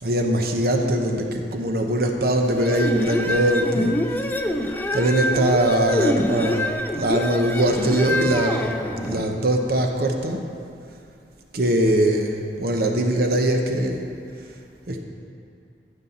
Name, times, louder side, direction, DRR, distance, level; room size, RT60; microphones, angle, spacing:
voice 1, 0.0-4.0 4.9-8.7 9.0-10.4 11.5-14.1 14.9-15.0, right 1 dB, 55° right, 3 dB, 0.8 m, -22 dB
sound 1, 2.5-9.3, left 1 dB, 10° left, 0.4 m, -25 dB
15.0 x 5.5 x 4.2 m, 2.4 s
head